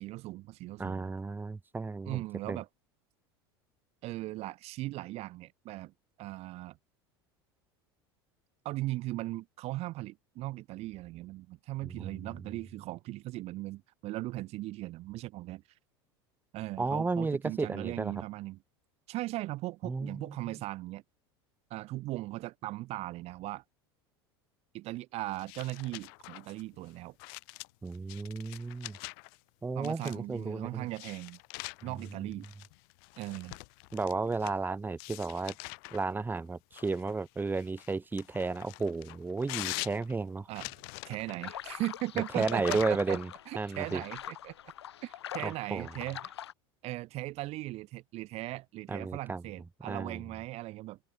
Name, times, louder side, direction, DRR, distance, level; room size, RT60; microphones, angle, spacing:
voice 1, 0.0-1.1 2.1-2.7 4.0-5.9 6.2-6.8 8.6-15.6 16.5-18.6 19.1-21.0 21.7-23.6 24.7-27.1 29.7-31.4 31.8-32.4 33.2-33.6 40.5-40.7 41.0-43.2 43.5-44.5 45.0-46.3 46.8-51.0, right 18 dB, 50° right, 0.9 m, -38 dB
voice 2, 0.8-2.6 11.8-12.2 16.8-18.1 19.8-20.4 27.8-29.0 29.6-30.9 32.2-32.3 33.9-35.5 35.9-40.5 42.3-43.3 43.5-44.0 45.4-45.9 48.9-49.4 49.9-50.2, right 3 dB, 15° right, 1.5 m, -33 dB
sound 1, 25.3-29.4 29.8-30.4 30.9-34.6 35.0-36.0 36.7-41.5 42.3-42.8, left 34 dB, 65° left, 1.0 m, -44 dB
sound 2, 41.4-46.5, left 11 dB, 85° left, 1.3 m, -42 dB
hypercardioid pair, 85°, 13 cm